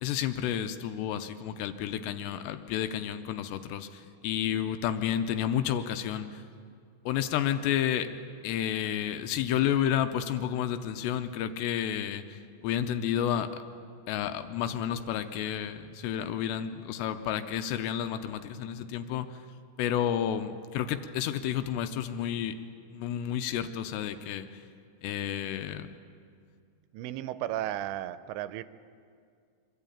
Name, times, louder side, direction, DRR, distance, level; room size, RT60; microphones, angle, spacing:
voice 1, 0.0-6.4 7.1-8.1 8.4-13.6 14.1-19.3 19.8-22.5 22.9-24.5 25.0-25.9, left 10 dB, 80° left, 9 dB, 2.8 m, -31 dB
voice 2, 26.9-28.6, right 13 dB, 85° right, 13 dB, 2.8 m, -34 dB
24.5 x 13.0 x 8.7 m, 2.3 s
omnidirectional pair, 5.2 m